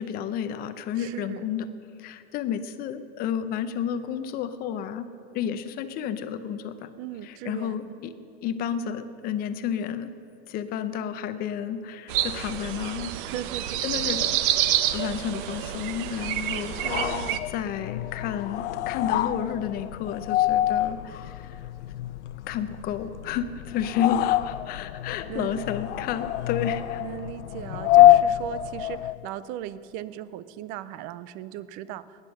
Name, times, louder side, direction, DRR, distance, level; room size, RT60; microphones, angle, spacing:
voice 1, 0.0-1.7 2.0-5.1 5.3-6.9 7.2-8.1 8.4-10.1 10.5-13.1 13.8-14.3 14.9-21.6 22.5-27.0, left 9 dB, 25° left, 11 dB, 0.7 m, -31 dB
voice 2, 1.0-1.5 7.0-7.8 13.2-13.8 16.8-17.4 25.3-25.6 27.0-32.0, right 12 dB, 25° right, 16 dB, 0.4 m, -37 dB
sound 1, 12.1-17.4, right 11 dB, 50° right, 0.8 m, -28 dB
sound 2, 16.7-29.3, left 13 dB, 85° left, 0.6 m, -25 dB
21.0 x 9.8 x 6.4 m, 2.7 s
supercardioid pair, 150°, 34 cm